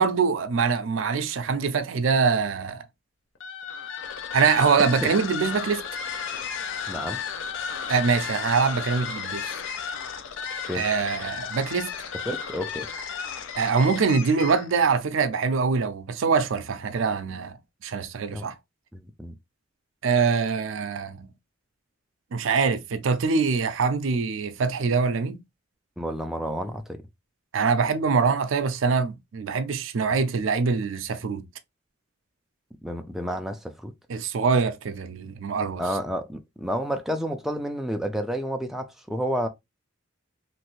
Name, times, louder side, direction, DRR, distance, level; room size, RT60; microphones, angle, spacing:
voice 1, 0.0-2.8 4.3-5.8 7.9-9.5 10.7-12.0 13.6-17.6 17.8-18.6 20.0-21.3 22.3-25.4 27.5-31.5 34.1-35.8, right 5 dB, 80° right, 0.4 m, -24 dB
sound 1, 3.3-14.8, left 7 dB, 75° left, 0.5 m, -33 dB
voice 2, 6.9-7.2 10.7-10.9 12.3-12.9 18.3-18.5 18.9-19.3 26.0-27.0 32.8-33.9 35.8-39.5, equal, ahead, 0.3 m, -30 dB
3.1 x 2.6 x 3.0 m
head